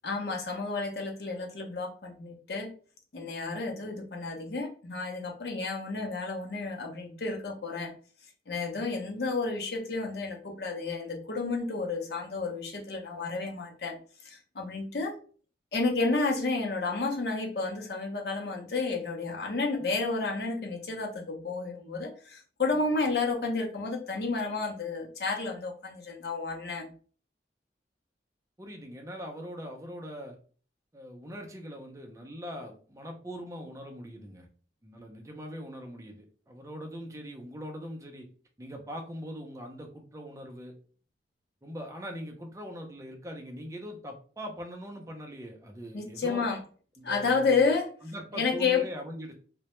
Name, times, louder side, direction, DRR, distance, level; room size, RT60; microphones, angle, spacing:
voice 1, 0.0-2.7 3.1-7.9 8.5-15.2 15.7-26.9 45.9-46.6 47.0-47.9 48.3-48.8, left 4 dB, 65° left, 2 dB, 0.6 m, -31 dB
voice 2, 28.6-30.4 30.9-34.5 34.8-38.3 38.6-40.7 41.6-46.5 47.0-47.7 48.0-49.3, equal, 15° right, 3 dB, 0.4 m, -41 dB
2.1 x 2.1 x 2.9 m, 0.41 s
head